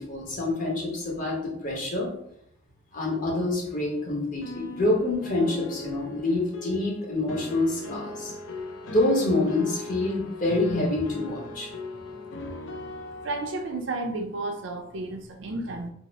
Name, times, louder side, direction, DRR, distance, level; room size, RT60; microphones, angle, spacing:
voice 1, 0.0-2.1 2.9-8.3 8.9-11.7, left 2 dB, 45° left, -3 dB, 1.0 m, -26 dB
sound 1, 3.7-13.8, left 2 dB, 80° left, 0.4 m, -39 dB
voice 2, 12.6-12.9 13.2-15.9, right 2 dB, 70° right, 3 dB, 0.5 m, -32 dB
2.8 x 2.0 x 4.0 m, 0.71 s
head